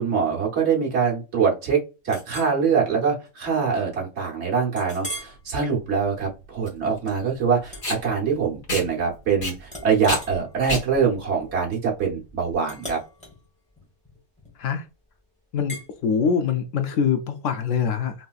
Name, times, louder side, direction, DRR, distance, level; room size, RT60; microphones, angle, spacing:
voice 1, 0.0-13.0, right 6 dB, 55° right, 1.3 m, -24 dB
Chink clink, 2.1-2.6 3.1-3.3 3.7-3.8 4.8-5.4 5.9-6.2 7.7-8.6 8.9-9.3 9.7-14.8 15.7-15.9, equal, 5° left, 0.9 m, -40 dB
Packing tape duct tape, 5.1-12.5, left 1 dB, 40° left, 1.4 m, -33 dB
voice 2, 15.5-18.1, left 6 dB, 70° left, 0.9 m, -24 dB
3.2 x 2.8 x 2.3 m
omnidirectional pair, 1.4 m